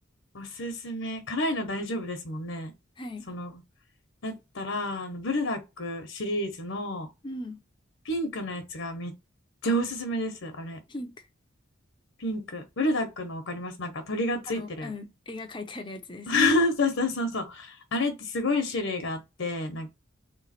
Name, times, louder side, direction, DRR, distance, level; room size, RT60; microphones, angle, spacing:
voice 1, 0.3-2.7 3.3-3.5 4.2-7.1 8.0-9.1 9.6-10.8 12.2-14.9 16.3-19.9, left 1 dB, 70° left, 0.9 m, -29 dB
voice 2, 3.0-3.3 7.2-7.6 10.9-11.3 14.5-16.5, left 2 dB, 25° left, 0.6 m, -39 dB
3.3 x 3.1 x 4.2 m
head